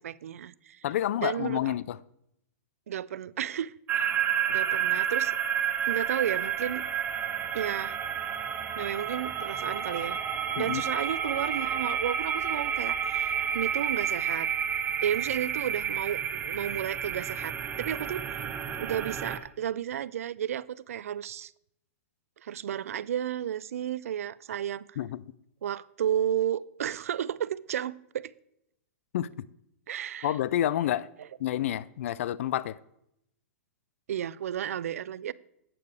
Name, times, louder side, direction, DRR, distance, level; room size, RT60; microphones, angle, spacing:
voice 1, 0.0-0.8 1.2-1.6 2.9-4.1 4.5-5.3 5.9-6.8 7.5-8.0 8.8-10.2 10.5-14.5 15.0-18.4 18.8-21.5 22.4-25.0 25.6-28.3 29.9-30.3 34.1-35.3, right 10 dB, 75° right, 0.4 m, -33 dB
voice 2, 0.8-2.0 10.6-10.8 25.0-25.2 29.1-29.3 30.2-31.1 31.4-32.8, left 12 dB, 65° left, 0.4 m, -29 dB
sound 1, 3.9-19.4, right 8 dB, 25° right, 0.9 m, -30 dB
11.5 x 8.6 x 3.3 m
hypercardioid pair, 115°, 8 cm